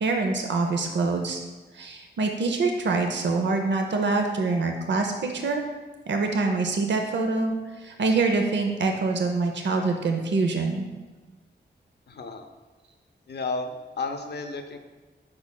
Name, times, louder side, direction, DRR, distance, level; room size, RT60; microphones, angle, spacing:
voice 1, 0.0-1.4 1.7-5.6 6.1-7.5 7.8-10.9, right 3 dB, 70° right, 3 dB, 0.6 m, -25 dB
voice 2, 12.1-12.5 13.3-14.8, left 3 dB, 65° left, 6 dB, 0.6 m, -32 dB
9.5 x 4.8 x 2.2 m, 1.3 s
cardioid pair, 60°, 19 cm